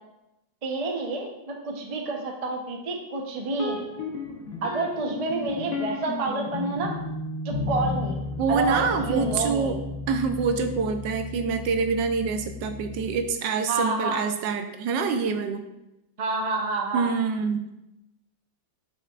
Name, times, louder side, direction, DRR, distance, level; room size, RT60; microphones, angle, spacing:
voice 1, 0.6-3.9 4.6-7.0 7.4-8.2 8.5-9.8 13.7-14.2 16.2-17.1, right 3 dB, 60° right, 1 dB, 0.3 m, -28 dB
sound 1, 3.5-13.3, left 3 dB, 55° left, 1.1 m, -34 dB
voice 2, 8.4-9.8 10.1-15.6 16.9-17.6, right 5 dB, 75° right, 7 dB, 1.2 m, -26 dB
8.0 x 5.7 x 2.4 m, 0.91 s
omnidirectional pair, 2.1 m